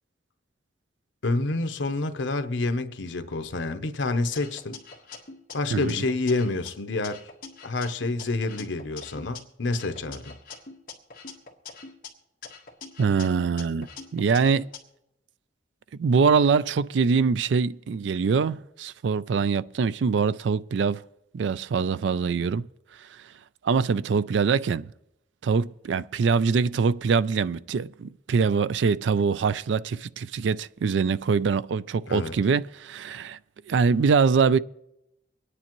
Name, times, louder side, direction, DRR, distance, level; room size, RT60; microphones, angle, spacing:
voice 1, 1.2-4.8 5.5-7.2 7.6-10.3 32.1-32.3, left 2 dB, 90° left, 0.8 m, -28 dB
sound 1, 4.3-6.7 7.0-9.4 9.7-12.1 12.4-14.8, left 5 dB, 50° left, 1.4 m, -43 dB
voice 2, 13.0-14.7 16.0-21.0 21.3-22.7 23.6-24.9 25.4-33.4 33.7-34.6, right 5 dB, 80° right, 0.4 m, -23 dB
24.5 x 9.8 x 3.0 m
head